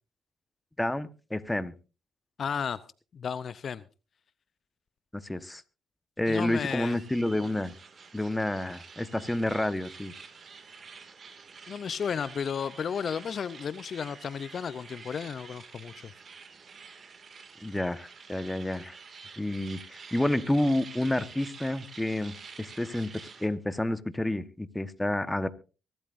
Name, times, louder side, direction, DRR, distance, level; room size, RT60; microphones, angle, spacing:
voice 1, 0.8-1.7 5.1-5.6 6.2-7.7 8.1-10.1 17.6-19.0 19.4-25.5, left 1 dB, 10° left, 1.2 m, -29 dB
voice 2, 2.4-2.8 3.1-3.8 6.3-7.0 11.7-16.1, left 7 dB, 55° left, 0.6 m, -33 dB
sound 1, 6.2-23.5, right 5 dB, 50° right, 2.2 m, -48 dB
24.0 x 12.5 x 2.6 m
supercardioid pair, 60°, 0 cm